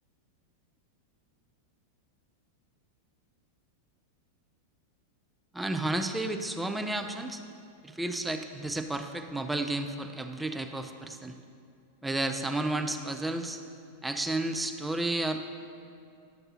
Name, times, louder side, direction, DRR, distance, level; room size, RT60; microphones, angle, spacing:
voice 1, 5.5-7.4 7.8-11.4 12.0-13.6 14.0-15.4, right 2 dB, 5° right, 6 dB, 0.4 m, -32 dB
11.0 x 6.5 x 2.9 m, 2.4 s
figure-of-eight pair, 90°, 0 cm